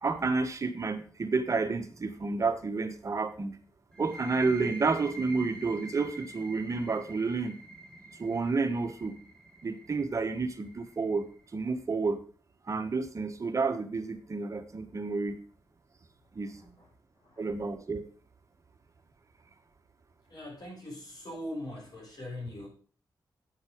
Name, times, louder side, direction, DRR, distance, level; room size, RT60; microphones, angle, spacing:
voice 1, 0.0-3.6 4.0-7.6 8.2-9.1 9.6-11.2 11.5-12.2 12.7-15.4 16.3-16.6 17.4-18.0, right 4 dB, 40° right, 7 dB, 1.2 m, -30 dB
sound 1, 3.9-11.4, right 2 dB, 10° left, 2.1 m, -46 dB
voice 2, 20.3-22.7, left 1 dB, 55° left, -1 dB, 6.0 m, -41 dB
8.7 x 7.9 x 5.0 m, 0.41 s
cardioid pair, 80°, 8 cm